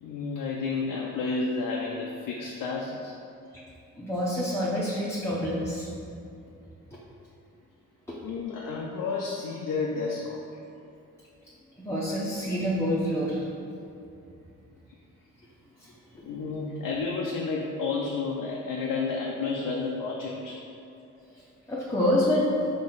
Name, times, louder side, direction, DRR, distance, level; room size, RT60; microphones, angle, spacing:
voice 1, 0.0-3.1 8.2-10.6 16.2-20.6, left 4 dB, 65° left, -2 dB, 0.6 m, -31 dB
voice 2, 4.0-5.9 11.8-13.4 15.8-15.9 21.7-22.5, equal, 10° left, -7 dB, 0.8 m, -27 dB
4.2 x 3.0 x 3.8 m, 2.6 s
hypercardioid pair, 40°, 36 cm